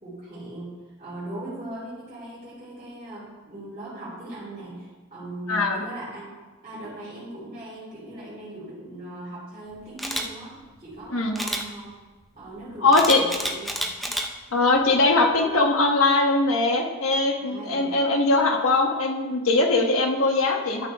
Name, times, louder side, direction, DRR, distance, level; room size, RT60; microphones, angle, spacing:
voice 1, 0.0-6.3 6.6-11.9 12.3-14.2 17.4-18.2, right 1 dB, 30° right, -13 dB, 3.1 m, -39 dB
voice 2, 5.5-5.8 11.1-11.3 12.8-13.2 14.5-20.9, left 2 dB, 80° left, 2 dB, 1.2 m, -21 dB
Camera, 10.0-10.2 11.4-11.6 12.9-14.3 14.8-15.0, equal, ahead, 0.5 m, -29 dB
12.0 x 5.9 x 3.4 m, 1.3 s
head